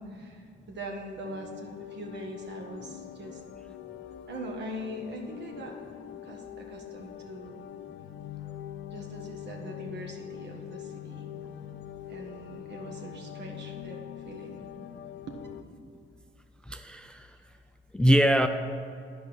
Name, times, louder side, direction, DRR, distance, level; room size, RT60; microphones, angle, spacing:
voice 1, 0.0-3.4 4.3-5.8 6.2-7.7 8.9-11.2 12.1-14.6 15.3-15.4, right 1 dB, 60° right, 1 dB, 1.5 m, -42 dB
sound 1, 1.2-15.6, left 11 dB, 70° left, 0.5 m, -43 dB
voice 2, 16.7-17.4 17.9-18.5, equal, 5° left, 8 dB, 0.4 m, -23 dB
10.5 x 5.3 x 6.1 m, 2.3 s
cardioid pair, 90°, 20 cm